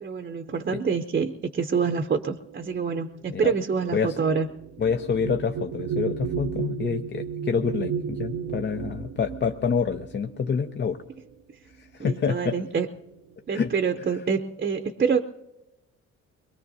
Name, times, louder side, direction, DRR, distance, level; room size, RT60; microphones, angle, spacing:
voice 1, 0.0-4.5 12.0-12.9 13.5-15.2, right 6 dB, 30° right, 7 dB, 0.7 m, -26 dB
sound 1, 2.4-11.3 12.3-12.4 12.8-13.3, right 7 dB, 75° right, 0.7 m, -34 dB
voice 2, 4.8-11.0 11.8-12.6 13.5-13.7 14.0-14.1, left 6 dB, 35° left, 7 dB, 0.6 m, -27 dB
23.0 x 21.0 x 2.7 m, 0.96 s
cardioid pair, 90°, 30 cm